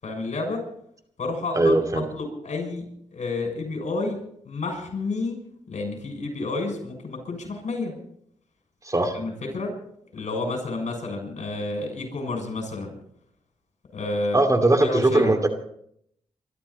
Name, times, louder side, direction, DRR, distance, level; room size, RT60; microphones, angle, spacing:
voice 1, 0.0-0.6 1.2-1.7 2.1-2.8 3.1-4.2 4.4-5.4 5.7-7.9 9.1-9.7 10.1-12.9 13.9-14.4 14.8-15.3, left 3 dB, 70° left, 3 dB, 6.6 m, -30 dB
voice 2, 1.5-2.1 8.8-9.1 14.3-15.5, right 2 dB, 25° right, 6 dB, 2.7 m, -20 dB
25.0 x 13.0 x 4.3 m, 0.70 s
cardioid pair, 55°, 13 cm